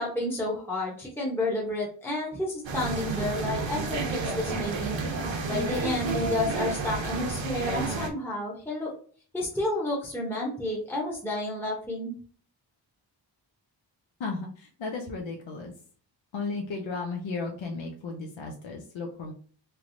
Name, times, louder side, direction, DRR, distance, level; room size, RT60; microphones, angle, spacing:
voice 1, 0.0-5.0 5.5-8.9 9.3-12.1, left 2 dB, 5° left, -4 dB, 0.8 m, -31 dB
sound 1, 2.6-8.1, right 3 dB, 80° right, 0.9 m, -31 dB
voice 2, 14.2-15.7 16.3-19.3, left 3 dB, 85° left, 2 dB, 0.7 m, -34 dB
3.3 x 3.1 x 2.5 m, 0.44 s
wide cardioid pair, 125°, 45 cm